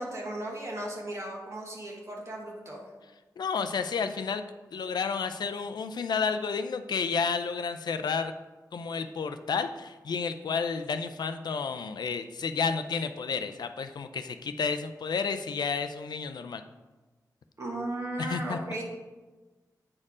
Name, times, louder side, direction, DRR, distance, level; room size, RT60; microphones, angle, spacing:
voice 1, 0.0-2.8 17.6-18.8, right 1 dB, 45° right, -1 dB, 1.3 m, -36 dB
voice 2, 3.4-4.4 4.7-8.3 8.7-16.6 18.2-18.6, left 5 dB, 80° left, 8 dB, 0.4 m, -31 dB
8.6 x 4.4 x 4.8 m, 1.2 s
wide cardioid pair, 130°, 7 cm